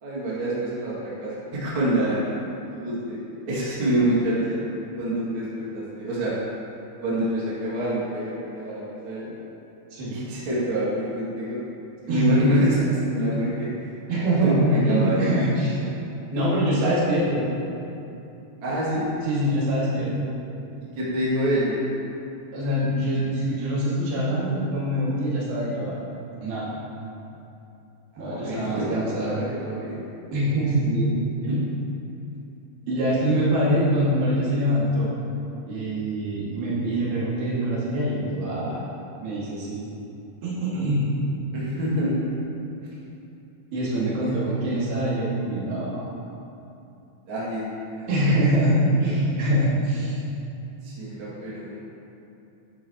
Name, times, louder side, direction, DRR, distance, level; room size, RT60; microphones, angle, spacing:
voice 1, 0.0-2.2 2.7-3.2 3.5-4.6 5.0-6.3 7.0-9.3 10.1-11.6 12.1-13.7 14.4-15.3 18.6-19.1 20.9-21.8 28.1-30.0 31.5-31.6 33.3-33.5 41.5-42.3 42.8-42.9 44.2-44.3 47.3-48.1 48.3-48.9 50.8-51.8, right 1 dB, 40° right, -9 dB, 2.6 m, -27 dB
voice 2, 12.1-12.6 13.3-13.5 14.1-15.9 16.3-17.4 19.2-20.1 22.5-26.0 26.4-26.7 28.2-29.4 30.3-31.1 31.4-31.7 32.9-35.1 35.7-38.8 39.2-39.8 40.4-41.1 43.7-46.1 48.1-50.2 51.1-51.2, equal, 70° right, -9 dB, 4.0 m, -24 dB
12.0 x 10.0 x 3.0 m, 2.8 s
omnidirectional pair, 4.4 m